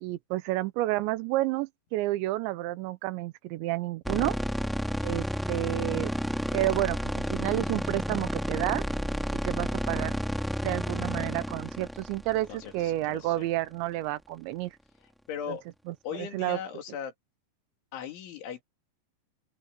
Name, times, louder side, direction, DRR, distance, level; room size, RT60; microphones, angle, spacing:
voice 1, 0.0-4.4 5.0-6.1 6.5-8.8 9.5-10.2 10.6-14.7 15.5-15.6 15.9-16.6, right 17 dB, 80° right, 3.0 m, -30 dB
sound 1, 4.0-13.2, equal, ahead, 0.4 m, -31 dB
voice 2, 12.5-13.5 15.3-15.6 16.0-17.1 17.9-18.6, left 8 dB, 90° left, 5.3 m, -38 dB
open air
omnidirectional pair, 5.2 m